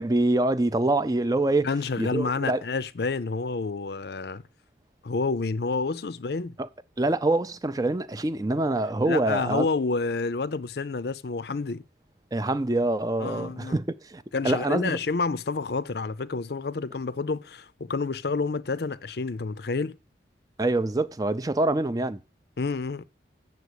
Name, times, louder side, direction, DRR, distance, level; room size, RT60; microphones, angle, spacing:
voice 1, 0.0-1.7 2.0-2.6 6.6-6.7 7.0-9.7 12.3-15.0 20.6-22.2, right 2 dB, 20° right, 0.5 m, -25 dB
voice 2, 1.6-4.4 5.0-6.6 9.0-11.8 13.2-13.8 14.3-20.0 22.6-23.0, left 4 dB, 60° left, 0.5 m, -29 dB
8.3 x 6.9 x 8.1 m
head